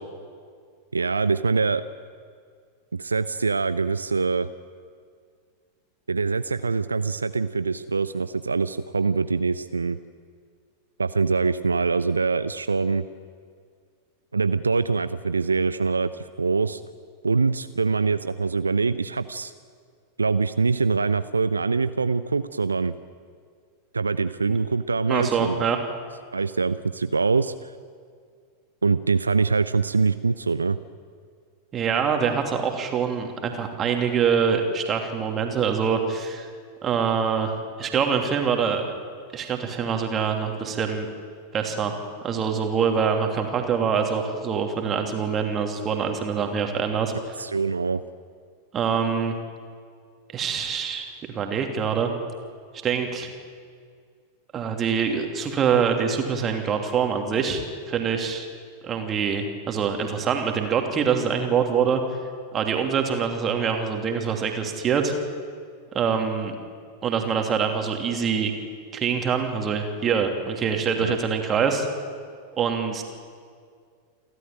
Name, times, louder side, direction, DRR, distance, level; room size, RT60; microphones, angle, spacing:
voice 1, 0.9-1.8 2.9-4.5 6.1-10.0 11.0-13.0 14.3-16.8 17.2-19.5 20.2-22.9 23.9-25.6 26.3-27.7 28.8-30.8 47.4-48.0 71.0-71.2, right 4 dB, 75° right, 14 dB, 0.5 m, -24 dB
voice 2, 25.1-25.8 31.7-36.5 36.8-37.5 37.8-38.8 39.3-41.1 41.5-41.9 42.2-47.3 48.7-49.3 50.3-51.1 51.3-52.1 52.8-53.3 54.5-58.5 58.8-62.0 62.5-65.1 65.9-66.5 67.0-68.5 68.9-71.9 72.6-73.0, right 6 dB, 25° right, 4 dB, 2.9 m, -24 dB
28.5 x 13.0 x 8.9 m, 2.1 s
figure-of-eight pair, 90°, 0 cm